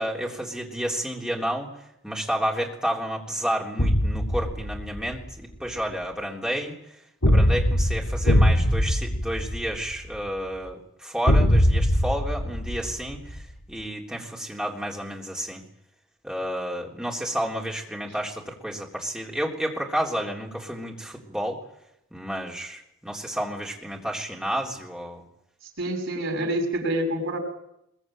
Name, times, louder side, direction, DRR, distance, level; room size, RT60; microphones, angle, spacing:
voice 1, 0.0-1.7 2.0-6.8 7.3-13.4 13.7-15.6 16.2-21.6 22.1-25.3, equal, 5° right, -1 dB, 3.6 m, -30 dB
sound 1, 3.8-5.2 7.2-10.2 11.3-13.4, equal, 85° left, 3.5 m, -21 dB
voice 2, 25.8-27.4, right 1 dB, 65° right, 4 dB, 6.6 m, -27 dB
22.5 x 20.5 x 9.0 m, 0.80 s
head